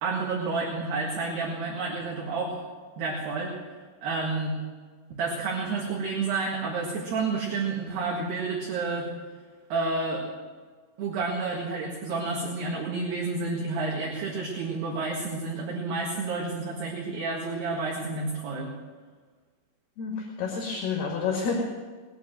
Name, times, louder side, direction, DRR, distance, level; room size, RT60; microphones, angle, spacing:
voice 1, 0.0-2.6 3.0-3.5 4.0-4.6 5.1-9.1 9.7-10.3 11.0-18.7, right 3 dB, 60° right, -2 dB, 3.5 m, -30 dB
voice 2, 20.0-21.6, left 5 dB, 60° left, -1 dB, 3.5 m, -29 dB
20.0 x 9.0 x 7.6 m, 1.5 s
omnidirectional pair, 5.7 m